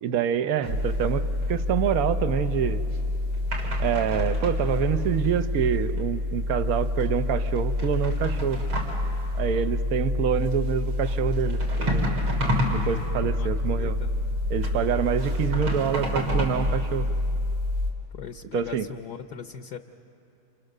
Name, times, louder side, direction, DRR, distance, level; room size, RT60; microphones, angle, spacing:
voice 1, 0.0-2.8 3.8-8.6 9.3-12.0 12.7-14.0 14.5-17.1 18.5-18.9, right 8 dB, 55° right, 10 dB, 1.1 m, -26 dB
sound 1, 0.6-17.9, left 1 dB, 85° right, 4.5 m, -27 dB
voice 2, 13.8-14.1 18.1-19.8, left 7 dB, 60° left, 7 dB, 1.2 m, -39 dB
29.0 x 28.5 x 6.6 m, 2.6 s
omnidirectional pair, 2.1 m